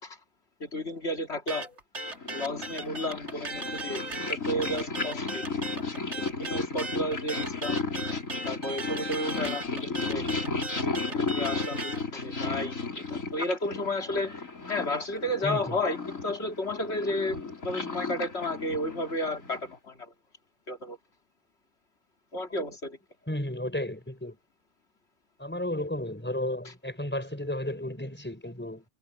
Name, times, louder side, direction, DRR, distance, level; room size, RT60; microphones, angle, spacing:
voice 1, 0.6-1.7 2.3-4.0 4.3-5.4 6.1-7.8 8.5-10.2 11.1-12.7 13.1-14.3 14.7-17.4 17.6-20.1 20.7-21.0 22.3-23.0, left 1 dB, 50° left, 3.1 m, -32 dB
sound 1, 1.5-12.0, right 2 dB, 55° right, 2.8 m, -37 dB
Purr, 2.1-19.8, left 4 dB, 75° left, 4.4 m, -34 dB
voice 2, 15.4-15.8 23.3-24.4 25.4-28.8, left 1 dB, 10° left, 5.2 m, -33 dB
omnidirectional pair, 1.4 m